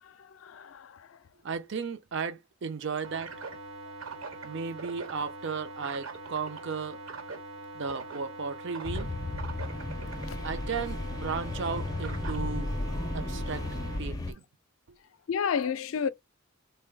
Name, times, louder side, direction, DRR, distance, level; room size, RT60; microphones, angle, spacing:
voice 1, 0.0-1.2 10.3-10.4 15.3-16.1, left 6 dB, 75° left, 0.4 m, -32 dB
voice 2, 1.4-3.3 4.4-7.0 7.7-9.1 10.4-12.7 13.1-13.7 14.0-14.4, right 5 dB, 60° right, 0.5 m, -35 dB
sound 1, 3.0-14.0, right 3 dB, 75° right, 1.1 m, -42 dB
sound 2, 8.8-14.3, left 2 dB, 20° left, 0.4 m, -34 dB
3.8 x 2.2 x 3.3 m
head